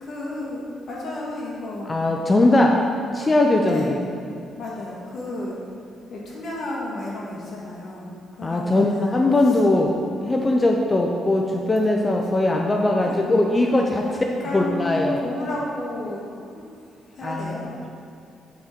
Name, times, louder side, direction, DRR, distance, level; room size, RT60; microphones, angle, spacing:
voice 1, 0.0-2.0 3.6-4.0 4.6-5.6 6.1-9.2 9.4-9.6 12.9-13.1 14.4-17.9, left 2 dB, 55° left, -4 dB, 1.7 m, -32 dB
voice 2, 1.9-2.8 3.1-4.0 8.4-9.9 10.2-14.1 14.5-15.2 17.2-17.9, left 2 dB, 25° left, 1 dB, 0.5 m, -20 dB
8.5 x 3.8 x 4.4 m, 2.6 s
cardioid pair, 90°, 0 cm